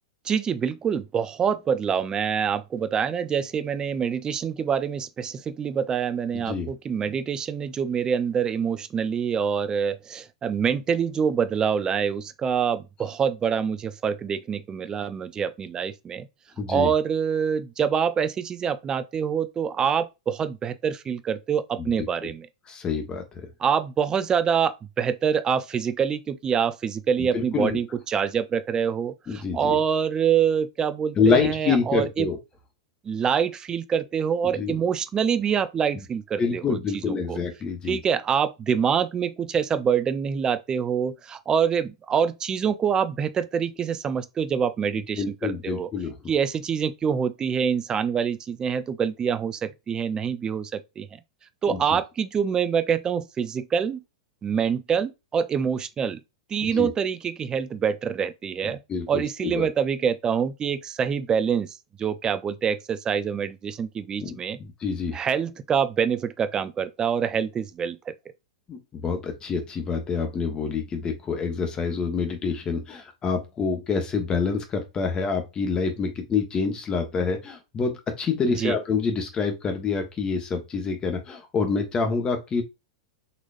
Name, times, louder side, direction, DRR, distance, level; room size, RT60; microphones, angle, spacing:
voice 1, 0.2-16.3 16.7-22.5 23.6-32.3 33.0-36.8 37.1-37.4 37.9-45.9 46.3-51.1 51.6-54.0 54.4-56.2 56.5-58.8 59.1-64.6 65.1-68.1 78.4-78.8, right 7 dB, 20° right, 0.4 m, -25 dB
voice 2, 6.3-6.7 16.6-16.9 21.8-21.9 22.7-23.4 27.2-27.8 29.3-29.8 31.2-32.4 34.6-34.7 36.4-38.0 45.2-46.1 51.7-51.8 56.6-56.9 58.6-59.7 64.2-65.2 68.7-82.6, left 5 dB, 25° left, 1.1 m, -27 dB
4.0 x 3.0 x 2.5 m
hypercardioid pair, 100°, 3 cm